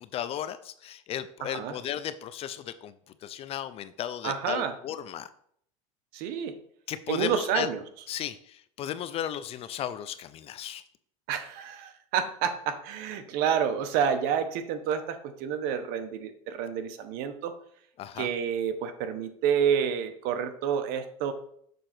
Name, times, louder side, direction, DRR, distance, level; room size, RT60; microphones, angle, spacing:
voice 1, 0.0-2.9 3.2-5.3 6.9-7.7 8.1-10.8 18.0-18.3, left 10 dB, 35° left, 13 dB, 0.4 m, -35 dB
voice 2, 1.4-1.7 4.2-4.7 6.1-6.5 7.1-7.8 11.3-17.5 18.2-21.3, right 8 dB, 60° right, 9 dB, 1.0 m, -29 dB
6.7 x 3.8 x 6.0 m, 0.66 s
supercardioid pair, 135°, 17 cm